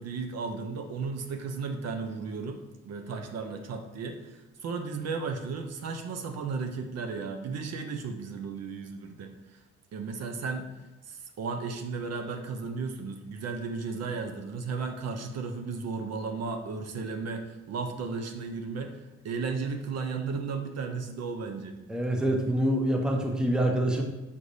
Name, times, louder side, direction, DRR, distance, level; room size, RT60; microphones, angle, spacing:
voice 1, 0.0-9.6 9.9-10.7 11.0-21.8, right 4 dB, 55° right, 5 dB, 0.5 m, -35 dB
voice 2, 21.9-24.0, right 1 dB, 5° right, 2 dB, 0.6 m, -26 dB
5.2 x 3.2 x 2.6 m, 1.1 s
cardioid pair, 90°, 30 cm